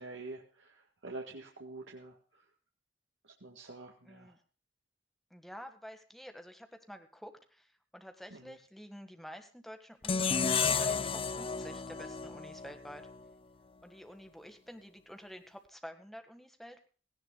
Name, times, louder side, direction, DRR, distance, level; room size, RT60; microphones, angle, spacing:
voice 1, 0.0-2.2 3.4-4.3 8.3-8.4, right 2 dB, 85° right, 1 dB, 1.9 m, -46 dB
voice 2, 4.0-4.4 5.3-13.1 13.8-16.9, equal, ahead, 6 dB, 1.6 m, -49 dB
sound 1, 10.0-13.2, left 5 dB, 30° left, 0.6 m, -32 dB
17.5 x 17.5 x 2.3 m, 0.39 s
head